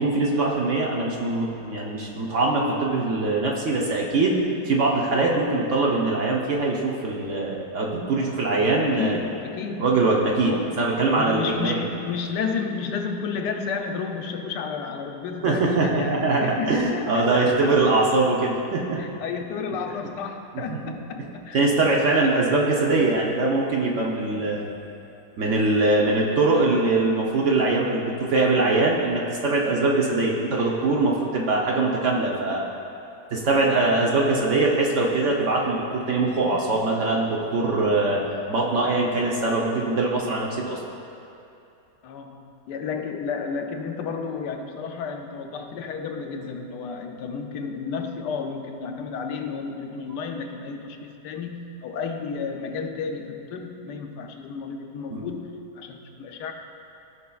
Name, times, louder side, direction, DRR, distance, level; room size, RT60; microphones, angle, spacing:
voice 1, 0.0-4.4 4.6-9.2 9.8-11.9 15.4-19.0 19.9-20.0 20.7-20.8 21.5-24.7 25.4-32.6 33.3-38.2 38.5-40.8 55.1-55.2, right 2 dB, 55° right, -2 dB, 0.9 m, -22 dB
voice 2, 8.8-10.0 10.5-10.8 11.1-17.7 19.0-21.6 22.2-22.3 22.8-23.0 24.2-24.6 42.0-56.5, left 5 dB, 90° left, 4 dB, 1.3 m, -32 dB
14.0 x 5.4 x 2.3 m, 2.8 s
omnidirectional pair, 1.8 m